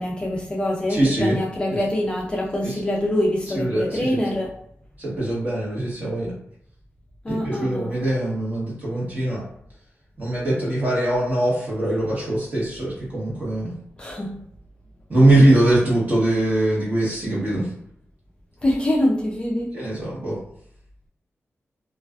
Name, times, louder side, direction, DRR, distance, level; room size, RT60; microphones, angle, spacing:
voice 1, 0.0-4.5 7.2-7.9 14.0-14.4 18.6-19.8, left 1 dB, 20° left, -3 dB, 0.3 m, -24 dB
voice 2, 0.9-1.4 1.7-1.8 2.6-2.8 3.5-4.2 5.0-6.3 7.3-9.4 10.2-13.7 15.1-17.7 19.7-20.4, right 1 dB, 35° right, -6 dB, 1.0 m, -22 dB
2.4 x 2.3 x 2.3 m, 0.67 s
wide cardioid pair, 180°, 5 cm